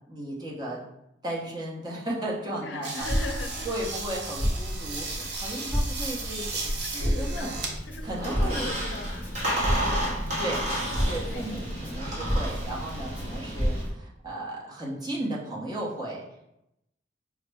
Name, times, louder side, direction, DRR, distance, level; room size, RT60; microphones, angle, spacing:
voice 1, 0.1-0.8 1.2-3.1 3.6-7.6 8.0-8.7 10.4-10.7 11.1-16.2, right 1 dB, 25° right, -5 dB, 0.9 m, -35 dB
voice 2, 2.5-3.8 7.0-7.6 7.9-10.2 11.3-11.5, left 3 dB, 70° left, 5 dB, 0.5 m, -39 dB
sound 1, 2.8-7.7 8.2-8.9, right 3 dB, 65° right, 0.7 m, -36 dB
Crackle, 3.0-13.9, equal, 10° left, 1.0 m, -31 dB
Squeak, 8.0-13.8, right 1 dB, 40° right, 1.3 m, -31 dB
4.9 x 2.1 x 3.3 m, 0.84 s
head